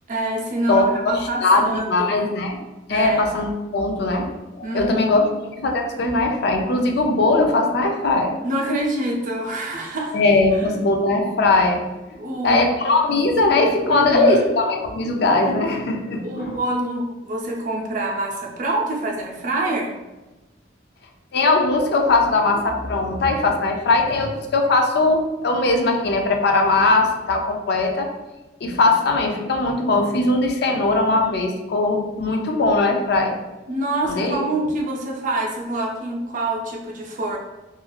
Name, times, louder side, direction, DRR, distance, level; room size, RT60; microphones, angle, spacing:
voice 1, 0.1-2.1 2.9-3.2 4.6-5.2 8.4-10.2 10.5-10.6 12.2-12.6 13.9-14.4 16.2-19.9 33.7-37.4, right 1 dB, 45° right, -1 dB, 0.5 m, -26 dB
voice 2, 0.7-2.6 2.9-4.3 4.6-5.2 5.6-8.4 10.1-16.6 21.3-28.1 28.6-33.4 34.0-34.4, left 2 dB, 60° left, 3 dB, 0.4 m, -20 dB
3.0 x 2.4 x 2.3 m, 1.1 s
head